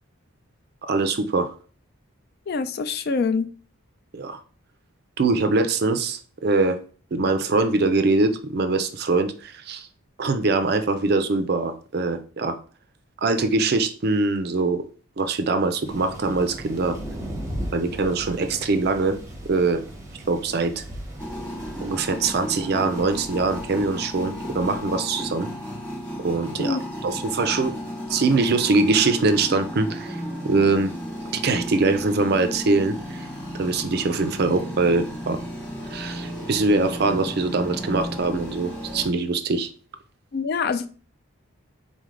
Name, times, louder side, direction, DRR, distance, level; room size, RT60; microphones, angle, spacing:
voice 1, 0.8-1.5 4.1-4.4 5.2-6.8 7.1-9.9 10.2-12.6 13.2-14.8 15.2-17.0 17.7-19.2 19.5-19.8 20.3-20.8 21.8-25.5 26.2-26.8 27.0-27.7 28.1-30.9 31.3-33.3 33.6-35.4 35.9-39.7, right 3 dB, 45° right, 0.4 m, -23 dB
voice 2, 2.5-3.5 26.6-26.8 40.3-40.9, left 4 dB, 45° left, 0.3 m, -25 dB
Thunder, 15.8-25.0, right 1 dB, 15° right, 0.7 m, -38 dB
sound 1, 21.2-39.1, equal, 10° left, 1.2 m, -34 dB
4.0 x 3.2 x 3.7 m
head